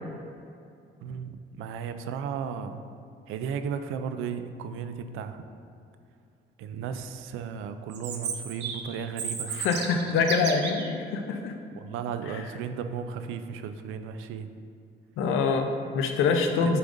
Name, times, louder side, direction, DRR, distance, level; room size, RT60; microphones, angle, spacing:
voice 1, 1.0-2.8 3.3-5.5 6.6-9.5 11.7-14.5 16.6-16.8, right 7 dB, 90° right, 9 dB, 0.4 m, -35 dB
Chirp tweet, 7.9-10.9, right 6 dB, 60° right, 0.7 m, -34 dB
voice 2, 9.5-11.5 12.3-12.4 15.2-16.8, left 4 dB, 85° left, 5 dB, 0.6 m, -25 dB
8.4 x 5.0 x 2.6 m, 2.4 s
cardioid pair, 110°, 20 cm